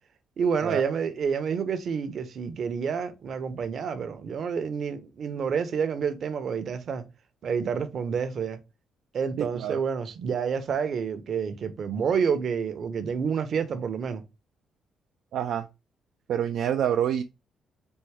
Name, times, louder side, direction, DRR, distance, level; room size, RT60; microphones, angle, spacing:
voice 1, 0.4-7.0 7.4-8.6 9.1-14.2, right 6 dB, 60° right, 0.7 m, -29 dB
voice 2, 9.4-9.8 15.3-15.7 16.3-17.2, right 9 dB, 75° right, 0.4 m, -27 dB
4.4 x 2.6 x 3.5 m
cardioid pair, 90°, 0 cm